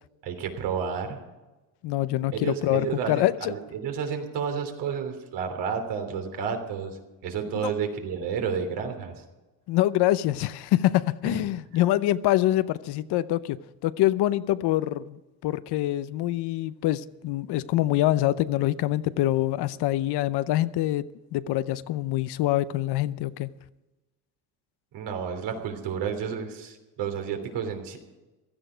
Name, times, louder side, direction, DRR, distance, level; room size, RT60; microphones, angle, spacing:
voice 1, 0.2-1.2 2.3-7.0 7.2-9.2 11.3-11.4 24.9-28.0, right 7 dB, 75° right, 3.2 m, -31 dB
voice 2, 1.8-3.5 7.5-7.7 9.7-23.5, left 14 dB, 70° left, 0.8 m, -25 dB
16.0 x 13.5 x 5.0 m
cardioid pair, 120°, 41 cm